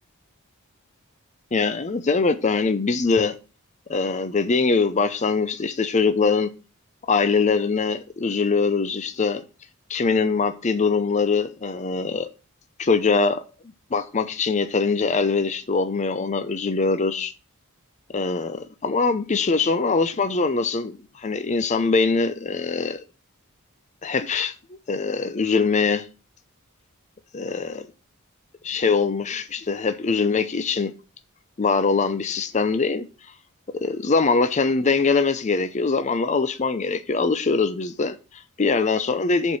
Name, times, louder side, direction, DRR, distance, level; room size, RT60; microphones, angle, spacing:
voice 1, 1.5-3.3 3.9-6.5 7.0-9.4 9.9-12.3 12.8-13.4 13.9-17.3 18.1-23.0 24.0-26.1 27.3-27.9 28.6-30.9 31.6-33.1 33.7-39.6, left 4 dB, 30° left, 0.5 m, -23 dB
7.1 x 4.5 x 6.3 m
head